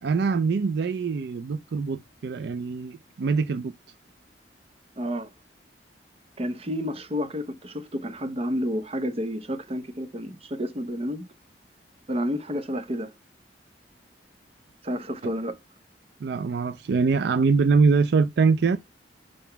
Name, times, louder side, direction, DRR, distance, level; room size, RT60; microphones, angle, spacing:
voice 1, 0.0-3.7 16.2-18.8, right 4 dB, 65° right, 0.4 m, -23 dB
voice 2, 5.0-5.3 6.4-11.2 12.1-13.1 14.8-15.6, equal, 35° right, 0.8 m, -30 dB
5.0 x 3.9 x 5.5 m
head